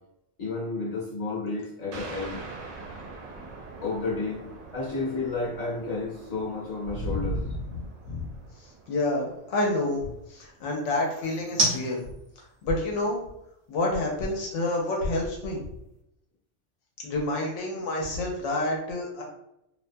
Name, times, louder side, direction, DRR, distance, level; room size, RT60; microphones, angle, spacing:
voice 1, 0.4-2.4 3.8-7.4, left 3 dB, 35° left, -6 dB, 1.0 m, -31 dB
sound 1, 1.8-16.0, right 1 dB, 35° right, 0.8 m, -39 dB
sound 2, 1.9-11.1, right 3 dB, 75° right, 0.8 m, -45 dB
voice 2, 7.0-8.3 8.9-12.1 12.6-13.2 13.7-15.6 17.0-19.2, left 2 dB, 85° left, -1 dB, 1.0 m, -29 dB
2.4 x 2.1 x 2.5 m, 0.82 s
omnidirectional pair, 1.2 m